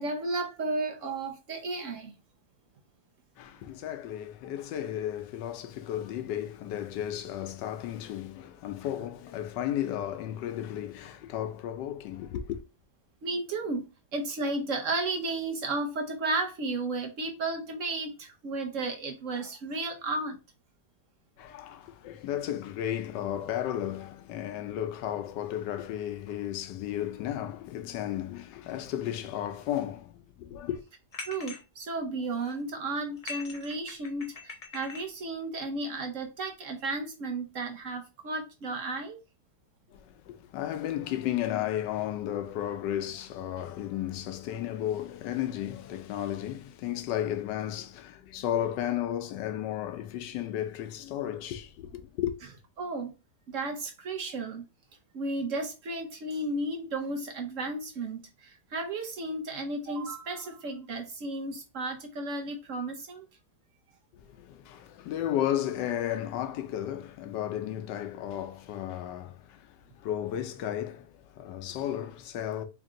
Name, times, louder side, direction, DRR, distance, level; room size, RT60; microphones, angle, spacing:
voice 1, 0.0-2.1 13.2-13.9 14.1-20.4 31.3-39.2 52.8-53.1 53.5-54.6 55.1-63.3, right 2 dB, 60° right, 1.0 m, -33 dB
voice 2, 3.4-12.6 21.4-30.8 39.9-52.3 64.2-72.6, left 11 dB, 90° left, 1.2 m, -34 dB
sound 1, 31.1-31.6 32.2-32.6 33.1-35.1, left 4 dB, 60° left, 0.3 m, -42 dB
3.5 x 2.6 x 3.7 m
omnidirectional pair, 1.8 m